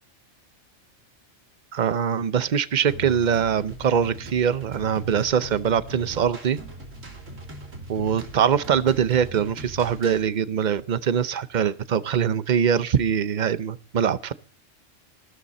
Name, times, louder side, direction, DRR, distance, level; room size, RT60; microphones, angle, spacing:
voice 1, 1.7-6.6 7.9-14.3, right 8 dB, 45° right, 0.7 m, -23 dB
sound 1, 2.9-10.3, right 1 dB, 80° right, 3.2 m, -40 dB
14.5 x 13.0 x 4.2 m
omnidirectional pair, 1.3 m